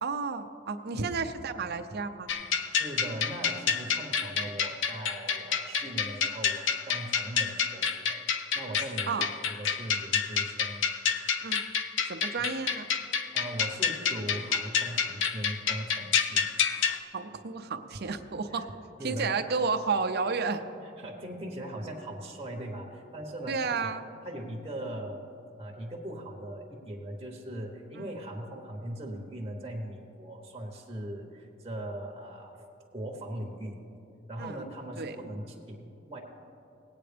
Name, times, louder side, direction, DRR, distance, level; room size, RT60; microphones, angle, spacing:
voice 1, 0.0-2.3 9.1-9.3 11.4-11.7 12.0-12.9 16.7-18.7 19.0-20.6 23.5-24.0 28.0-28.1 34.4-34.6 35.0-35.2, right 4 dB, 55° right, 7 dB, 0.6 m, -32 dB
sound 1, 2.3-17.0, left 7 dB, 70° left, 0.6 m, -29 dB
voice 2, 2.7-8.2 8.5-10.8 13.3-16.4 18.5-18.7 19.0-19.4 21.0-23.9 24.2-25.2 25.6-32.6 32.9-33.8 34.3-36.2, right 1 dB, 20° right, -1 dB, 1.1 m, -39 dB
18.0 x 9.0 x 3.4 m, 2.9 s
head